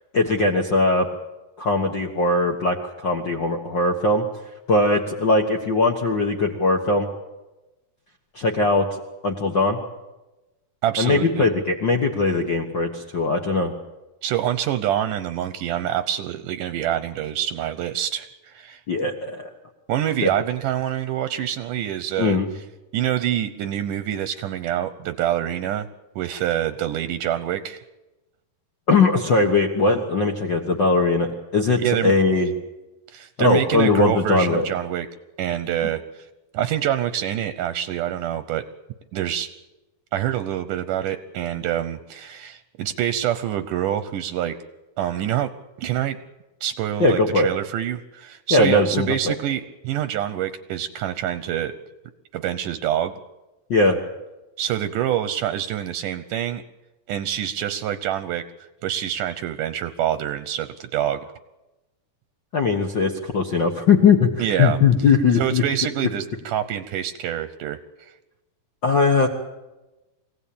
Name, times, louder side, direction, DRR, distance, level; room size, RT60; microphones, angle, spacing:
voice 1, 0.1-1.1 1.6-4.2 4.7-7.1 8.3-8.9 9.2-9.8 11.0-13.7 18.9-19.5 20.2-20.3 22.2-22.5 28.9-32.5 33.4-34.6 47.0-47.5 48.5-49.3 53.7-54.0 62.5-65.6 68.8-69.3, left 3 dB, 65° left, 2 dB, 1.1 m, -20 dB
voice 2, 10.8-11.5 14.2-18.8 19.9-22.6 22.9-25.9 26.2-27.8 31.8-32.1 33.1-35.1 35.4-36.3 36.5-38.6 39.1-39.5 40.1-44.5 45.0-45.5 45.8-46.2 46.6-51.7 52.3-53.1 54.6-56.6 57.1-58.4 58.8-61.3 64.4-64.8 65.4-68.1, right 11 dB, 70° right, 11 dB, 2.1 m, -26 dB
24.5 x 17.0 x 8.6 m, 1.1 s
omnidirectional pair, 4.5 m